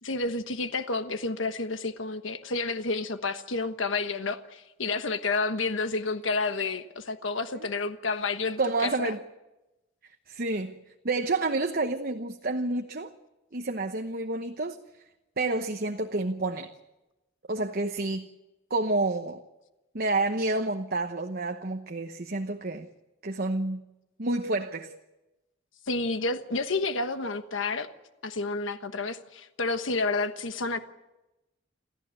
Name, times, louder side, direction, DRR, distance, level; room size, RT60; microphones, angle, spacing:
voice 1, 0.0-9.1 25.9-27.9 28.2-30.8, left 3 dB, 75° left, 1.3 m, -30 dB
voice 2, 8.6-9.2 10.3-10.8 11.0-13.1 13.5-14.8 15.4-16.7 17.5-18.3 18.7-19.4 19.9-22.9 23.2-23.8 24.2-24.9, right 2 dB, 50° right, 1.0 m, -29 dB
28.0 x 14.5 x 9.0 m
head